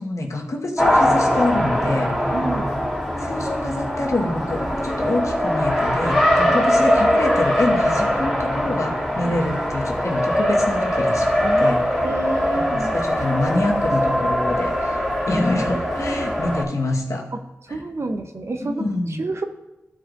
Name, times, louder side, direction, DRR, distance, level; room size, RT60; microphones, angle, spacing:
voice 1, 0.0-2.3 3.2-12.1 12.6-15.0 15.3-17.3 17.7-17.8 18.6-19.2, left 2 dB, 65° left, 0 dB, 1.3 m, -26 dB
Race car auto racing, 0.8-16.6, equal, 5° right, 2.5 m, -21 dB
voice 2, 2.3-2.7 6.5-6.6 9.2-9.3 11.2-11.8 12.0-12.9 13.3-13.5 15.3-16.3 17.7-18.9 19.2-19.4, right 2 dB, 50° right, 6 dB, 0.8 m, -29 dB
14.0 x 4.9 x 2.6 m, 0.99 s
cardioid pair, 55°, 6 cm